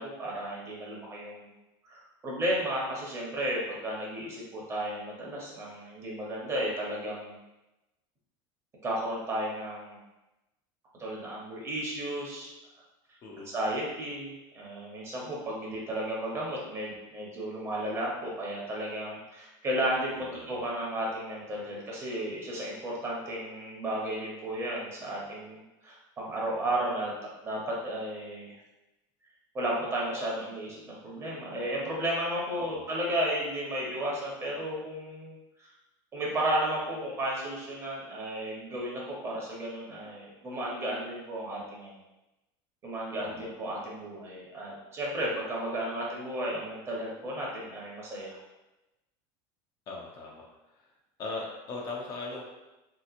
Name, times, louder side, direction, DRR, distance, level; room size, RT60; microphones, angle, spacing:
voice 1, 0.0-1.5 1.8-7.4 8.8-10.0 11.0-12.5 13.4-27.1 27.4-28.6 29.5-35.7 36.1-42.0 42.8-48.4, right 1 dB, 25° right, -4 dB, 0.8 m, -33 dB
voice 2, 20.1-20.6 32.6-32.8 43.2-43.5 49.9-50.5 51.2-52.4, left 3 dB, 35° left, -2 dB, 0.5 m, -39 dB
3.2 x 2.9 x 2.5 m, 0.99 s
cardioid pair, 150°, 11 cm